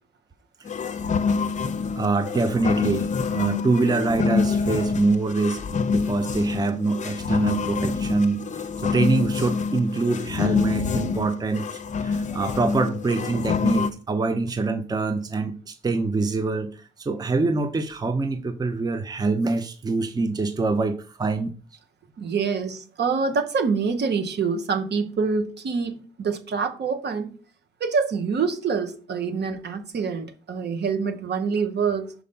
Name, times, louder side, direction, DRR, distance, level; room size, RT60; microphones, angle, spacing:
sound 1, 0.6-13.9, left 5 dB, 40° left, 0.7 m, -26 dB
voice 1, 2.0-8.4 8.8-11.7 12.0-21.5, right 3 dB, 20° right, 0.7 m, -25 dB
voice 2, 22.2-27.3 27.8-32.1, right 5 dB, 60° right, 1.4 m, -26 dB
5.6 x 4.8 x 5.4 m
cardioid pair, 90°, 20 cm